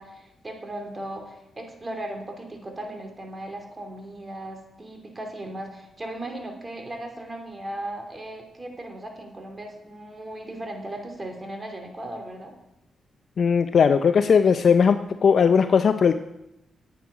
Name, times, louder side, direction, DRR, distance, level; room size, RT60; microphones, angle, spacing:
voice 1, 0.0-12.5, right 1 dB, 30° right, 3 dB, 2.8 m, -37 dB
voice 2, 13.4-16.1, left 6 dB, 60° left, 9 dB, 0.4 m, -18 dB
9.6 x 9.2 x 4.8 m, 0.87 s
supercardioid pair, 55°, 0 cm